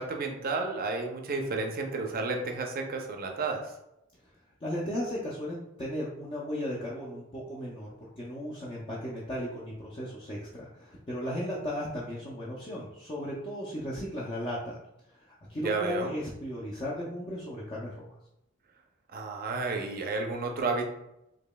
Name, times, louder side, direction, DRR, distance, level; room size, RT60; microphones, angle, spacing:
voice 1, 0.0-3.7 15.6-16.1 19.1-20.8, right 3 dB, 45° right, 2 dB, 0.6 m, -31 dB
voice 2, 4.6-7.9 8.2-14.8 15.1-18.1, equal, 25° left, -5 dB, 0.5 m, -36 dB
5.0 x 2.8 x 2.2 m, 0.86 s
head